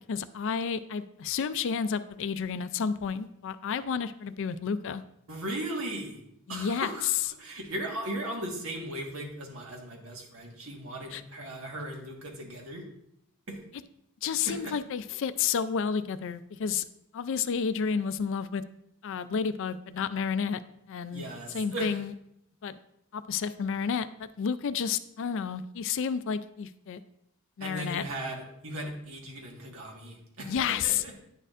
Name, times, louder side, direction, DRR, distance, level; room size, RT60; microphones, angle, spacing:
voice 1, 0.1-5.0 6.5-6.9 11.1-11.2 14.2-16.8 17.1-18.6 19.0-20.6 20.9-22.1 22.6-22.8 23.1-27.0 27.6-28.0 30.5-31.0, left 6 dB, 60° left, 13 dB, 0.4 m, -31 dB
voice 2, 5.3-6.2 6.5-7.1 7.4-12.9 13.5-13.6 14.4-14.7 21.1-22.0 27.6-31.2, right 1 dB, 65° right, 0 dB, 1.6 m, -37 dB
9.8 x 6.6 x 2.5 m, 0.76 s
head